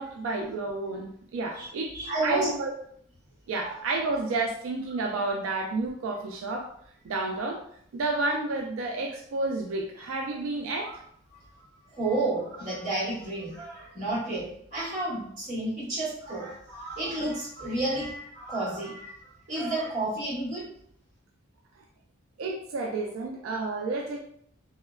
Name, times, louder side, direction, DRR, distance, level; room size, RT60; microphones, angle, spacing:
voice 1, 0.0-1.9 2.2-2.7 3.5-6.7 7.0-7.6 7.9-11.0 22.4-24.2, right 3 dB, 85° right, 1 dB, 0.3 m, -30 dB
voice 2, 1.9-2.5 3.6-3.8 10.8-11.0 11.3-19.2 19.5-20.7, right 2 dB, 40° right, -8 dB, 1.4 m, -31 dB
3.1 x 2.1 x 2.3 m, 0.67 s
head